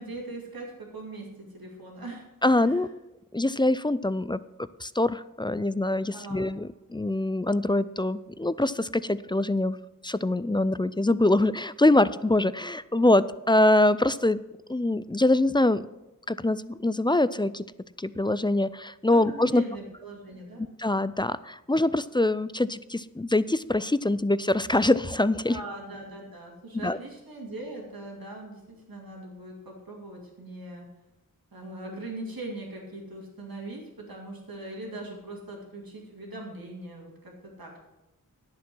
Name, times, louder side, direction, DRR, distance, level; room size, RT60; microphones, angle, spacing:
voice 1, 0.0-2.3 2.5-2.8 6.1-6.5 19.1-20.6 25.5-30.9 31.5-37.8, right 2 dB, 90° right, -1 dB, 2.4 m, -41 dB
voice 2, 2.4-2.9 3.3-4.4 4.8-9.8 10.0-14.4 14.7-15.8 16.3-17.6 18.0-19.6 20.8-25.6 26.8-27.0, left 2 dB, 15° left, 16 dB, 0.3 m, -24 dB
11.0 x 7.3 x 6.1 m, 0.98 s
wide cardioid pair, 45°, 34 cm